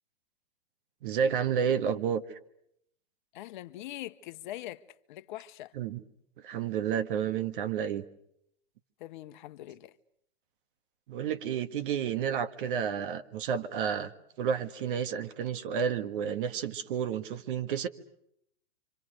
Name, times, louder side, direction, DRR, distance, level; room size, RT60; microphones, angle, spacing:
voice 1, 1.0-2.2 5.7-6.0 6.4-8.0 11.1-14.1 14.4-17.9, right 8 dB, 55° right, 1.8 m, -30 dB
voice 2, 3.3-5.7 9.0-9.9, left 14 dB, 50° left, 1.1 m, -43 dB
28.0 x 26.0 x 6.4 m
hypercardioid pair, 135°, 31 cm